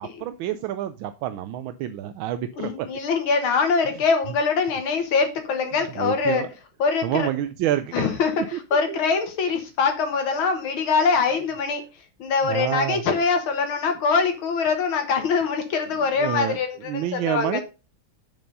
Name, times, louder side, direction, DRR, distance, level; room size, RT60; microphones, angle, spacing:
voice 1, 0.0-2.9 6.0-6.5 7.0-8.1 8.5-8.6 8.9-9.0 12.4-13.0 16.2-16.6 16.9-17.6, right 12 dB, 80° right, 10 dB, 1.4 m, -28 dB
voice 2, 2.6-6.4 6.8-7.3 7.9-11.8 12.2-17.6, left 5 dB, 90° left, 5 dB, 2.2 m, -23 dB
7.4 x 5.2 x 5.3 m, 0.30 s
omnidirectional pair, 2.2 m